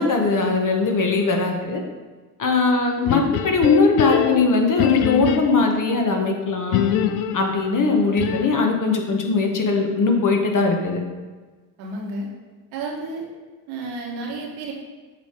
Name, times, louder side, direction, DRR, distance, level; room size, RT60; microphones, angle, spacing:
voice 1, 0.0-1.8 2.4-6.8 7.3-11.0, left 3 dB, 40° left, 2 dB, 1.4 m, -20 dB
sound 1, 3.1-5.8 6.7-8.7, left 9 dB, 80° left, 0.6 m, -24 dB
voice 2, 11.8-12.3 12.7-13.3 13.7-14.7, right 2 dB, 80° right, -2 dB, 1.7 m, -31 dB
7.3 x 3.5 x 5.0 m, 1.3 s
hypercardioid pair, 60°, 47 cm